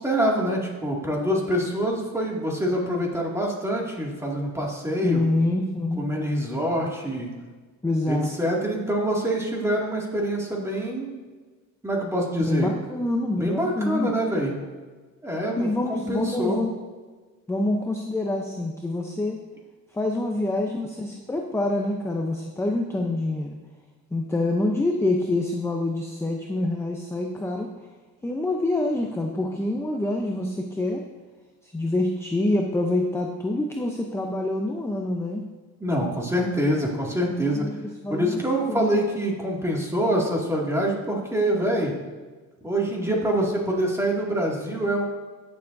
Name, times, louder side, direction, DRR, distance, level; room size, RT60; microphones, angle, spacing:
voice 1, 0.0-5.3 6.0-7.3 8.1-11.1 11.8-12.7 13.4-14.5 15.2-16.6 20.2-20.5 35.8-37.7 38.1-41.9 42.6-45.0, equal, 10° right, -2 dB, 2.2 m, -25 dB
voice 2, 5.0-6.0 7.8-8.3 12.5-14.1 15.6-16.8 17.5-19.4 19.9-23.6 24.1-27.7 28.2-31.0 31.6-35.4 37.4-37.8 38.0-38.9, left 2 dB, 10° left, 2 dB, 0.6 m, -26 dB
18.0 x 7.0 x 2.7 m, 1.3 s
cardioid pair, 125°, 31 cm